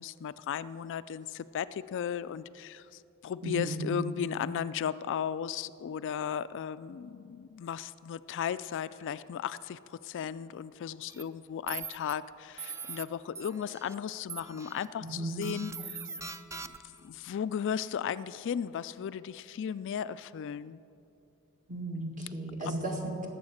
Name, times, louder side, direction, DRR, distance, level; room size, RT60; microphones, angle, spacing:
voice 1, 0.0-16.0 17.0-20.8 22.6-22.7, left 8 dB, 55° left, 15 dB, 0.3 m, -35 dB
voice 2, 3.4-3.9 15.0-15.4 21.7-23.3, right 2 dB, 35° right, 1 dB, 2.0 m, -35 dB
sound 1, 11.1-11.2 11.7-12.1 12.6-13.0 13.4-14.0 14.3-14.9 15.4-17.0, right 5 dB, 15° right, 0.4 m, -42 dB
19.0 x 7.8 x 6.4 m, 2.7 s
head